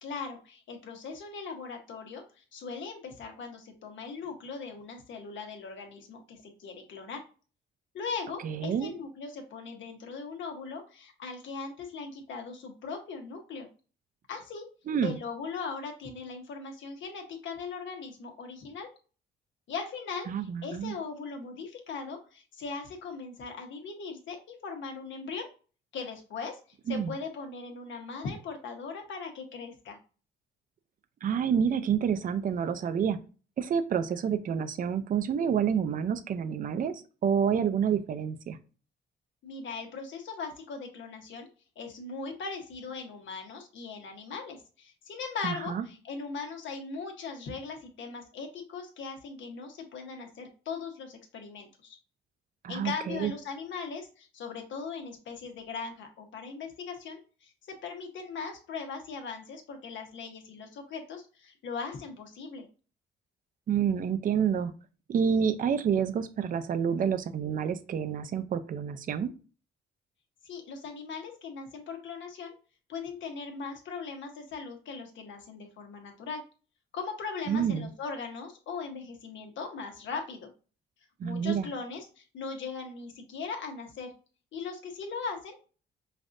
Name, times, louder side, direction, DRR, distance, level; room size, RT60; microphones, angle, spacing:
voice 1, 0.0-7.2 7.9-13.7 14.3-14.7 15.0-18.9 19.7-25.5 25.9-30.0 39.4-41.5 41.8-52.0 52.7-62.7 70.4-72.5 72.9-76.4 76.9-80.5 81.2-84.1 84.5-85.7, left 5 dB, 70° left, 4 dB, 1.2 m, -39 dB
voice 2, 8.4-8.9 14.9-15.2 20.3-20.9 26.9-27.1 31.2-33.2 33.6-38.6 45.4-45.8 52.6-53.3 63.7-64.7 65.1-69.3 77.5-77.9 81.2-81.7, right 7 dB, 45° right, 10 dB, 0.5 m, -28 dB
5.2 x 2.5 x 2.6 m, 0.35 s
cardioid pair, 90°, 20 cm